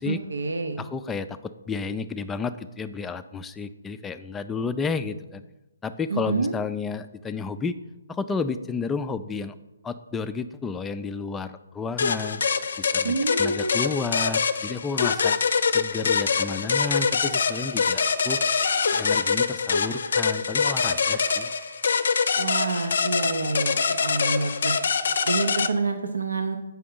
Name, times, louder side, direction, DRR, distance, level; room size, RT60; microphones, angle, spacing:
voice 1, 0.1-0.8 6.1-6.5 13.0-13.9 22.4-24.8 25.3-26.6, right 3 dB, 80° right, 6 dB, 0.6 m, -28 dB
voice 2, 0.8-5.4 5.8-7.8 8.1-9.6 9.8-12.4 12.8-15.4 15.7-18.4 18.9-21.5, left 4 dB, 10° left, 10 dB, 0.3 m, -31 dB
sound 1, 12.0-25.7, left 5 dB, 65° left, 0.5 m, -24 dB
8.3 x 5.7 x 3.7 m, 1.0 s
figure-of-eight pair, 140°, 0 cm